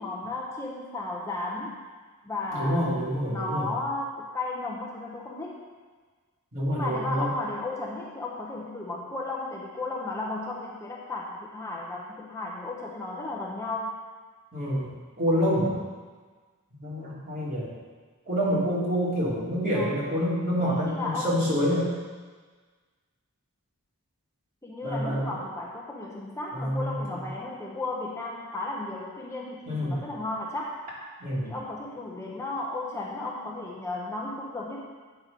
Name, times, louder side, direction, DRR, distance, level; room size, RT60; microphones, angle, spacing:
voice 1, 0.0-1.8 2.2-5.6 6.7-14.0 19.7-20.1 20.6-21.4 24.6-30.8 31.4-34.8, left 2 dB, 15° left, -3 dB, 0.8 m, -34 dB
voice 2, 2.5-3.7 6.5-7.3 14.5-14.9 15.2-15.8 16.7-17.7 18.3-21.9 24.8-25.3 26.5-27.2 29.7-30.0 31.2-31.5, equal, 40° right, -8 dB, 3.0 m, -27 dB
8.7 x 5.9 x 5.3 m, 1.4 s
head